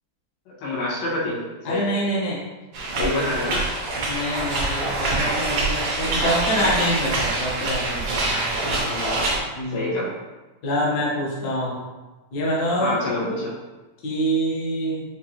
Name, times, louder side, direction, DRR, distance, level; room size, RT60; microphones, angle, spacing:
voice 1, 0.6-1.4 1.7-1.9 3.0-3.7 8.7-9.3 9.7-10.1 12.8-13.5, left 2 dB, 85° left, -7 dB, 3.0 m, -26 dB
voice 2, 1.6-2.4 2.9-3.4 4.0-8.5 9.5-9.9 10.6-11.8 12.3-12.9 14.0-15.0, equal, 70° left, -6 dB, 0.9 m, -26 dB
sound 1, 2.7-9.4, right 2 dB, 90° right, 1.2 m, -25 dB
6.5 x 2.6 x 2.9 m, 1.2 s
omnidirectional pair, 3.8 m